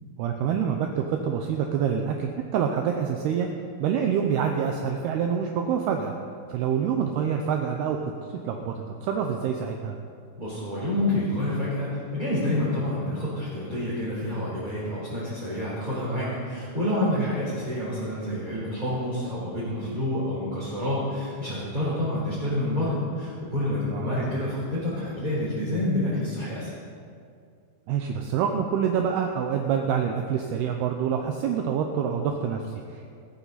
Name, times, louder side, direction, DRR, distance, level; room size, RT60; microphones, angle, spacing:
voice 1, 0.2-3.5 3.8-6.1 6.5-8.0 8.3-10.0 17.2-17.3 23.9-24.4 27.9-33.2, right 7 dB, 75° right, 3 dB, 2.6 m, -26 dB
voice 2, 10.4-26.7, left 1 dB, 10° right, -9 dB, 3.5 m, -28 dB
20.5 x 14.0 x 4.1 m, 2.3 s
omnidirectional pair, 5.0 m